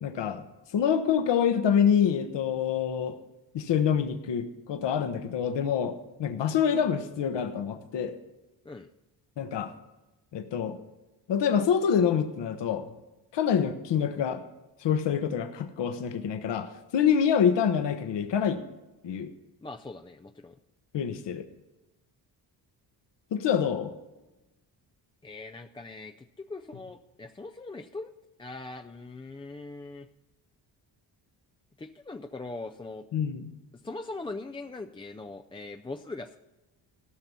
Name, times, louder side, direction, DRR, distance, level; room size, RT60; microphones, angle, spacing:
voice 1, 0.0-0.4 0.7-3.2 3.5-5.9 6.2-8.2 9.4-9.7 10.3-10.8 11.3-12.9 13.3-14.4 14.8-18.6 19.0-19.3 20.9-21.4 23.3-23.9 33.1-33.5, left 8 dB, 60° left, 8 dB, 1.0 m, -26 dB
voice 2, 19.6-20.6 25.2-28.1 28.4-30.1 31.8-33.1 33.8-36.4, left 3 dB, 10° left, 5 dB, 0.3 m, -41 dB
13.0 x 5.9 x 6.8 m, 1.0 s
cardioid pair, 70°, 48 cm